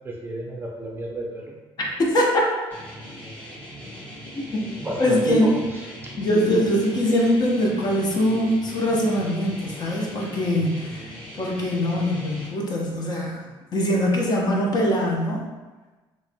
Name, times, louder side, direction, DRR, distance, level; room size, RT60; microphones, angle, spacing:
voice 1, 0.0-1.6 4.8-5.8, right 1 dB, 20° right, -1 dB, 0.5 m, -30 dB
voice 2, 1.8-2.4 4.5-4.7 5.0-5.5 6.2-11.1 11.4-13.4 13.7-15.4, equal, 45° left, -2 dB, 0.8 m, -22 dB
sound 1, 2.7-12.5, equal, 15° left, 1.2 m, -40 dB
4.2 x 3.0 x 2.2 m, 1.2 s
cardioid pair, 125°, 10 cm